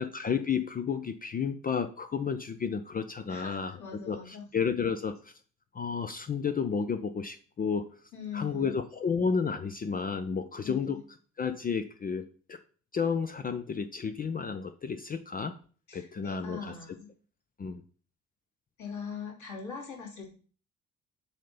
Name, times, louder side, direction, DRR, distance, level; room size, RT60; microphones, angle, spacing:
voice 1, 0.0-3.8 4.1-5.3 5.7-7.9 8.3-11.0 11.4-12.2 12.5-12.6 12.9-15.5 15.9-16.7 17.6-17.8, left 6 dB, 25° left, 10 dB, 0.5 m, -31 dB
voice 2, 3.3-4.5 8.1-8.7 10.6-11.0 15.9-17.1 18.8-20.3, left 5 dB, 50° left, -3 dB, 2.8 m, -41 dB
7.2 x 2.8 x 5.6 m, 0.40 s
figure-of-eight pair, 45°, 38 cm